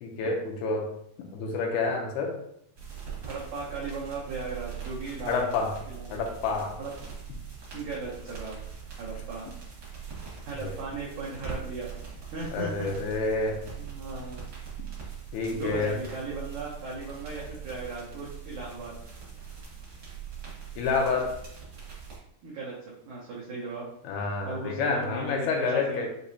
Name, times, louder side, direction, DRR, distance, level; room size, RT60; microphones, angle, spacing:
voice 1, 0.0-0.9 1.3-2.4 5.3-5.7 6.1-6.8 10.6-10.8 12.5-13.6 15.3-15.9 20.8-21.3 24.1-26.1, left 4 dB, 80° left, 2 dB, 2.5 m, -28 dB
sound 1, 2.8-22.2, right 7 dB, 60° right, 1.1 m, -42 dB
voice 2, 3.2-5.5 5.9-6.2 6.8-6.9 7.7-8.6 9.0-9.5 10.5-11.9 12.3-12.9 13.8-14.5 15.5-18.9 22.4-23.8 24.4-26.1, right 3 dB, 90° right, -5 dB, 1.6 m, -37 dB
6.6 x 2.9 x 2.7 m, 0.73 s
omnidirectional pair, 4.6 m